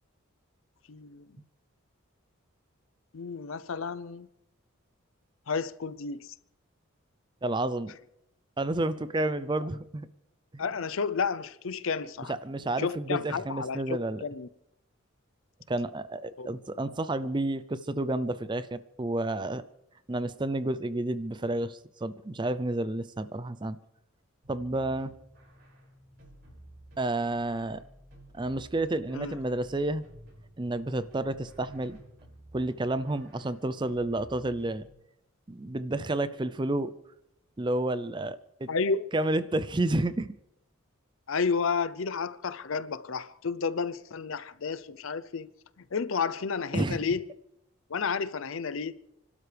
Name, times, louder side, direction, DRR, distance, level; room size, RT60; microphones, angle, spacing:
voice 1, 0.9-1.3 3.1-4.3 5.5-6.3 10.6-12.3 12.8-14.5 16.4-16.5 29.1-29.4 38.7-39.1 41.3-45.5 45.8-47.3 47.9-49.0, left 5 dB, 70° left, 0.6 m, -31 dB
voice 2, 7.4-7.9 8.6-10.1 10.5-10.7 12.3-14.3 15.7-19.6 20.1-23.8 24.5-25.1 27.0-27.8 28.3-30.0 30.6-32.0 32.5-34.8 35.5-36.9 37.6-38.7 39.1-40.3 46.7-47.0, right 2 dB, 20° right, 0.5 m, -30 dB
sound 1, 24.4-34.9, right 1 dB, 55° right, 6.0 m, -53 dB
30.0 x 12.5 x 3.4 m
head